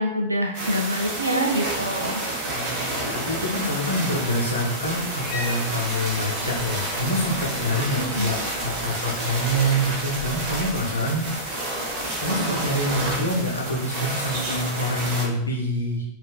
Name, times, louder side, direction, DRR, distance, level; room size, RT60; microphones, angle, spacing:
voice 1, 0.0-2.2 8.0-8.3, equal, 80° right, 2 dB, 0.6 m, -25 dB
sound 1, 0.5-15.3, right 1 dB, 45° right, 1.2 m, -29 dB
sound 2, 1.3-5.4, right 10 dB, 25° right, 1.1 m, -43 dB
voice 2, 2.5-11.6 12.2-16.0, equal, 75° left, -1 dB, 0.8 m, -26 dB
Cat, 4.8-13.8, left 2 dB, 35° left, 0.9 m, -42 dB
5.2 x 2.7 x 2.2 m, 0.78 s
figure-of-eight pair, 90°, 0 cm